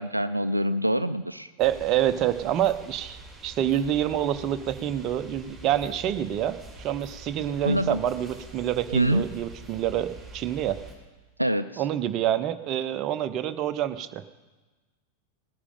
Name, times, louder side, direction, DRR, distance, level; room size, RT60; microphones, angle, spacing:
voice 1, 0.0-1.5 7.6-8.0 8.9-9.3 11.4-11.8, equal, 85° right, 12 dB, 0.4 m, -25 dB
sound 1, 1.6-10.9, right 2 dB, 5° right, 3.5 m, -45 dB
voice 2, 1.6-10.8 11.8-14.2, right 11 dB, 35° right, 10 dB, 0.7 m, -27 dB
18.5 x 9.9 x 5.0 m, 1.2 s
figure-of-eight pair, 90°, 0 cm